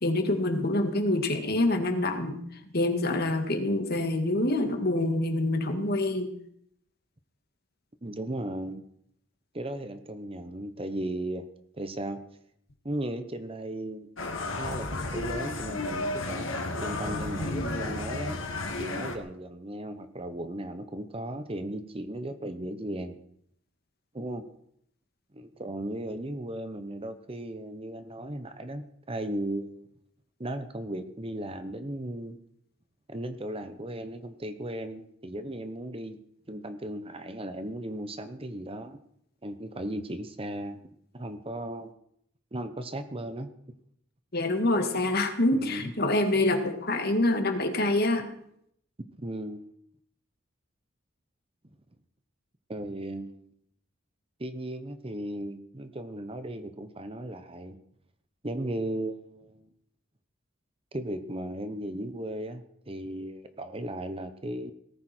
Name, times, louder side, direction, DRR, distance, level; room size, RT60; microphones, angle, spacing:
voice 1, 0.0-2.4 2.7-6.3 44.3-48.2, left 2 dB, 50° left, 5 dB, 2.1 m, -26 dB
voice 2, 8.0-8.8 9.5-11.4 11.8-12.2 12.8-14.1 14.5-18.4 18.8-23.2 24.1-24.4 25.3-29.9 30.4-32.4 33.1-36.2 36.5-39.0 39.4-40.8 41.1-41.9 42.5-43.5 45.5-45.9 49.2-49.7 52.7-53.5 54.4-57.8 58.4-59.7 60.9-64.7, right 1 dB, 25° right, 9 dB, 1.0 m, -36 dB
sound 1, 14.2-19.2, left 2 dB, 70° left, 2.2 m, -32 dB
18.0 x 14.5 x 4.5 m, 0.70 s
head